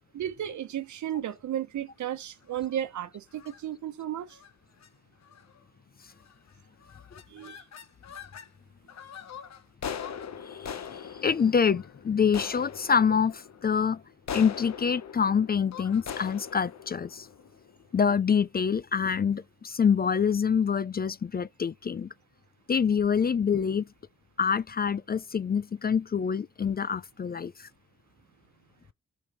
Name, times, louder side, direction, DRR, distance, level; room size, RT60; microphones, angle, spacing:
voice 1, 0.1-4.4 7.3-7.6, right 11 dB, 80° right, 1.0 m, -34 dB
sound 1, 2.4-2.8 3.3-3.6 4.3-4.5 4.8-4.9 5.2-5.6 6.2-6.5 6.8-8.5 8.9-18.1, left 7 dB, 65° left, 1.0 m, -42 dB
voice 2, 10.5-14.0 14.3-17.3 17.9-22.1 22.7-23.9 24.4-27.7, left 6 dB, 35° left, 0.4 m, -26 dB
14.5 x 5.3 x 3.1 m
supercardioid pair, 45°, 29 cm